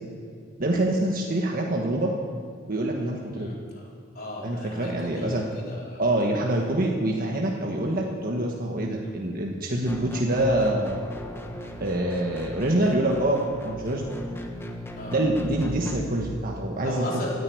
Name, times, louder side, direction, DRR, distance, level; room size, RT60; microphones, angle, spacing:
voice 1, 0.6-2.1 2.7-3.5 4.4-5.4 6.0-11.0 11.8-14.1 15.1-17.2, right 1 dB, 45° right, 0 dB, 1.5 m, -25 dB
voice 2, 3.3-3.8 4.1-6.0 9.0-9.1 15.0-15.2 16.8-17.4, left 1 dB, 50° left, -4 dB, 4.2 m, -35 dB
sound 1, 9.9-16.0, left 1 dB, 10° left, 1.4 m, -38 dB
14.5 x 10.0 x 9.5 m, 2.3 s
head